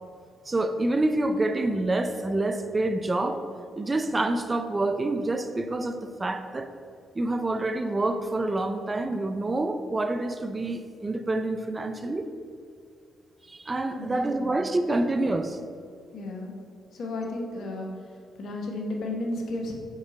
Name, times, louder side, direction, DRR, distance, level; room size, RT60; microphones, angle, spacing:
voice 1, 0.5-3.4 3.8-6.7 7.2-12.3 13.5-15.6, right 2 dB, 30° right, 9 dB, 0.5 m, -27 dB
voice 2, 14.0-14.5 16.1-16.5 16.9-17.9 18.4-19.7, left 2 dB, 70° left, 1 dB, 1.1 m, -33 dB
5.3 x 4.0 x 5.1 m, 2.3 s
supercardioid pair, 50°, 0 cm